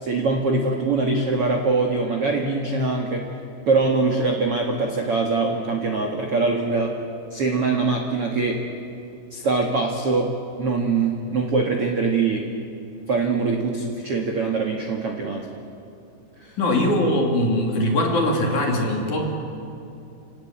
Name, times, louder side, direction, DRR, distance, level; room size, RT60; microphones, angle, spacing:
voice 1, 0.0-3.3 3.7-6.9 7.3-8.6 9.3-10.3 10.6-12.5 13.1-15.5 16.4-16.6, right 3 dB, 55° right, 2 dB, 1.6 m, -23 dB
voice 2, 16.6-19.3, left 1 dB, 45° left, 0 dB, 4.0 m, -21 dB
30.0 x 18.0 x 8.9 m, 2.6 s
omnidirectional pair, 5.1 m